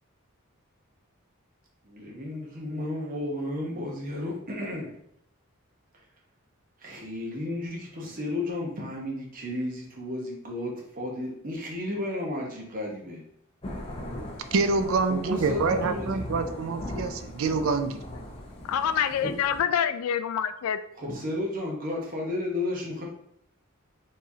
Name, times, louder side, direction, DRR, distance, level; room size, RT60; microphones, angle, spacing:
voice 1, 1.8-4.9 6.8-13.2 15.1-16.2 19.2-19.3 21.0-23.1, left 1 dB, 40° right, -2 dB, 1.0 m, -33 dB
Thunder / Rain, 13.6-19.6, left 1 dB, 25° left, 0.6 m, -38 dB
voice 2, 14.5-18.0, right 4 dB, 65° right, 9 dB, 0.4 m, -26 dB
voice 3, 18.7-20.8, left 8 dB, 85° left, 12 dB, 0.3 m, -26 dB
4.7 x 3.0 x 2.8 m, 0.69 s
head